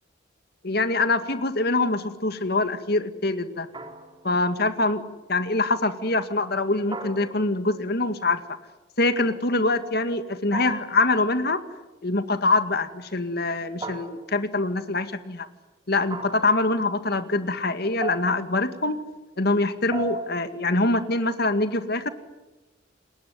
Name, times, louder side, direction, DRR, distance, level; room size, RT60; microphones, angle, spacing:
voice 1, 0.6-3.7 4.2-5.0 5.3-8.6 9.0-11.6 12.0-15.5 15.9-19.0 19.4-22.1, left 2 dB, 55° left, 10 dB, 2.1 m, -24 dB
sound 1, 3.7-4.4 6.9-7.8 10.5-11.1 13.8-14.5 16.1-16.6 18.0-18.6 19.9-20.5, right 3 dB, 25° right, 3.5 m, -36 dB
29.5 x 20.0 x 9.5 m, 1.1 s
head